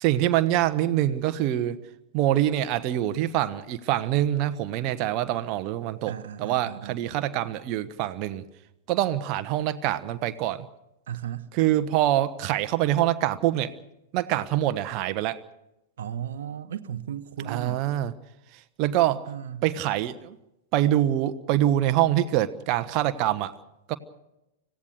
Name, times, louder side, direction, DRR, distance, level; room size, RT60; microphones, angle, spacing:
voice 1, 0.0-1.8 2.1-6.1 6.4-8.4 8.9-10.7 11.5-13.7 14.1-15.4 17.4-18.1 18.8-19.2 19.6-20.4 20.7-23.5 23.9-24.0, right 13 dB, 40° right, 11 dB, 1.3 m, -25 dB
voice 2, 6.1-7.0 11.1-11.5 16.0-17.8 19.3-19.6, right 9 dB, 65° right, 9 dB, 1.0 m, -35 dB
25.5 x 16.5 x 6.6 m, 0.89 s
figure-of-eight pair, 95°, 0 cm